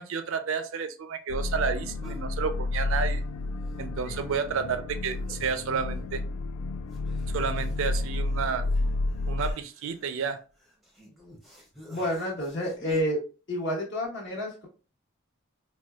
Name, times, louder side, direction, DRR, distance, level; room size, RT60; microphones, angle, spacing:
voice 1, 0.0-3.2 3.8-6.2 7.3-8.6 9.3-10.4, right 5 dB, 65° right, 10 dB, 0.4 m, -31 dB
sound 1, 1.3-9.5, left 2 dB, 90° left, 0.3 m, -31 dB
sound 2, 2.0-2.3 2.9-3.4 3.7-3.8 4.0-4.6 5.1-5.6 5.9-6.0 6.9-13.0, left 1 dB, ahead, 0.6 m, -51 dB
voice 2, 11.9-13.2 13.5-14.7, equal, 50° left, -2 dB, 1.2 m, -29 dB
4.3 x 2.2 x 2.3 m, 0.35 s
head